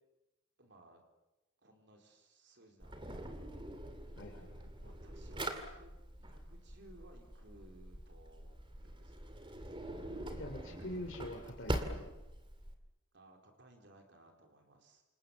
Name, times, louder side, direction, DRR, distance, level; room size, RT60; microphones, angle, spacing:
voice 1, 0.6-1.0 1.6-3.4 4.8-9.4 13.1-15.0, right 1 dB, 55° right, 3 dB, 4.2 m, -61 dB
Drawer open or close, 2.8-12.7, right 1 dB, 25° right, 2.3 m, -44 dB
voice 2, 4.2-4.7 10.3-12.1, left 1 dB, 60° left, 2 dB, 3.2 m, -45 dB
28.5 x 27.5 x 7.2 m, 1.0 s
head